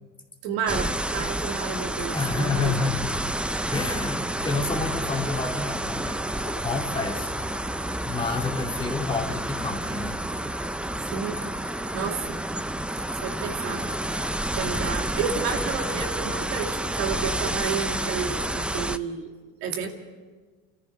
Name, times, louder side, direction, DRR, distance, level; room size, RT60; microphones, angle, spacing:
voice 1, 0.4-2.7 11.1-11.4 11.6-12.4 13.2-13.8 14.6-19.3 19.6-19.9, right 6 dB, 75° right, 2 dB, 2.6 m, -31 dB
sound 1, 0.7-19.0, right 1 dB, 5° right, 0.6 m, -29 dB
voice 2, 2.1-3.2 3.7-10.2, left 4 dB, 15° left, 2 dB, 2.5 m, -29 dB
29.0 x 14.0 x 6.3 m, 1.4 s
supercardioid pair, 95°, 30 cm